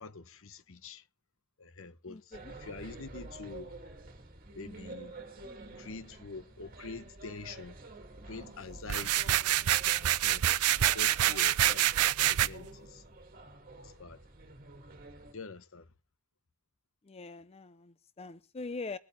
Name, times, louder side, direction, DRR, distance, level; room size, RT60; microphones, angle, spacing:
voice 1, 0.0-1.0 1.6-3.7 4.5-5.1 5.7-7.8 8.3-9.4 9.8-10.5 10.7-13.0 13.8-14.2 15.3-15.9, left 3 dB, 65° left, 0.9 m, -46 dB
voice 2, 2.1-2.5 17.1-19.0, left 3 dB, 25° left, 0.5 m, -42 dB
sound 1, 2.3-15.3, right 2 dB, 40° right, 2.2 m, -49 dB
sound 2, 8.9-12.5, right 12 dB, 90° right, 0.5 m, -26 dB
22.5 x 8.3 x 3.1 m
head